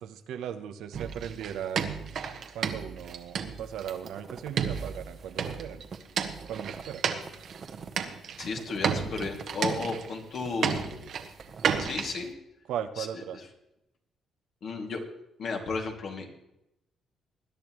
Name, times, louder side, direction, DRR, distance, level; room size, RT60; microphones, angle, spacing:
voice 1, 0.0-2.0 2.5-5.8 6.5-7.0 12.7-13.4, right 9 dB, 85° right, 9 dB, 0.9 m, -37 dB
sound 1, 0.9-4.1 4.6-7.7 8.0-8.5 8.8-10.4 10.6-12.2, right 7 dB, 70° right, 1.3 m, -32 dB
sound 2, 3.6-10.0 10.3-11.8, right 5 dB, 50° right, 1.1 m, -46 dB
voice 2, 8.4-10.9 11.8-12.3 13.0-13.5 14.6-15.0 15.4-16.3, left 4 dB, 60° left, 1 dB, 2.5 m, -34 dB
21.0 x 10.5 x 3.2 m, 0.87 s
cardioid pair, 90°, 0 cm